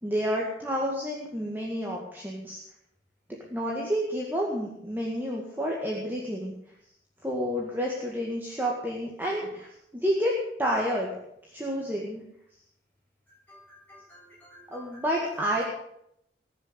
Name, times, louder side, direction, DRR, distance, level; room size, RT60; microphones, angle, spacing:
voice 1, 0.0-2.6 3.5-6.5 7.2-11.1 11.5-12.2 14.7-15.6, equal, 10° right, -3 dB, 2.0 m, -29 dB
voice 2, 13.3-15.0, left 1 dB, 10° left, -3 dB, 6.3 m, -52 dB
20.0 x 6.8 x 8.1 m, 0.77 s
head